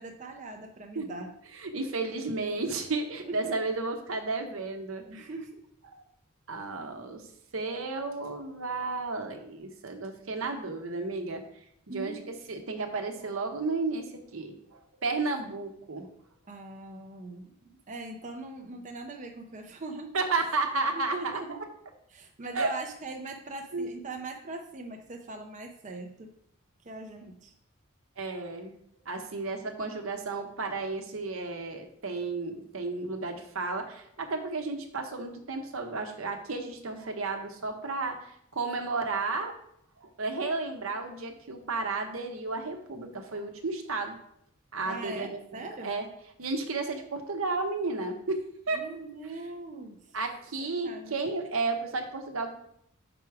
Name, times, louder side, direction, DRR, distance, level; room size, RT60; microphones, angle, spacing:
voice 1, 0.0-1.3 3.2-3.5 5.1-5.6 11.9-12.3 16.5-20.2 20.9-21.6 22.1-26.3 26.8-27.5 44.9-46.0 48.7-50.2 50.8-51.2, right 2 dB, 35° right, 3 dB, 0.5 m, -41 dB
voice 2, 1.6-5.3 5.9-6.0 6.5-7.3 7.5-11.4 11.9-16.1 20.1-21.6 22.5-22.7 23.7-23.9 28.2-28.8 29.1-39.5 40.0-44.2 44.7-45.4 45.8-46.1 46.4-48.4 48.7-48.8 50.1-52.5, right 3 dB, 70° right, 5 dB, 0.9 m, -33 dB
6.0 x 4.7 x 4.8 m, 0.72 s
head